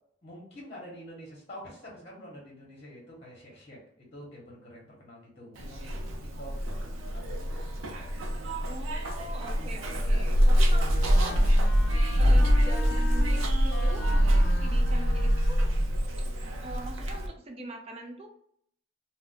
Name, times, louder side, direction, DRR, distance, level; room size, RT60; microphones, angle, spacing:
voice 1, 0.2-8.5 9.5-11.0 11.9-12.2 15.8-16.0, equal, 30° left, -3 dB, 1.0 m, -48 dB
Zipper (clothing), 5.6-17.3, equal, 80° right, 0.5 m, -25 dB
voice 2, 8.6-11.5 12.2-15.7 16.6-18.3, right 2 dB, 30° right, 3 dB, 0.5 m, -43 dB
Wind instrument woodwind instrument, 10.6-16.0, left 3 dB, 60° left, 0.5 m, -41 dB
2.4 x 2.1 x 3.7 m, 0.69 s
head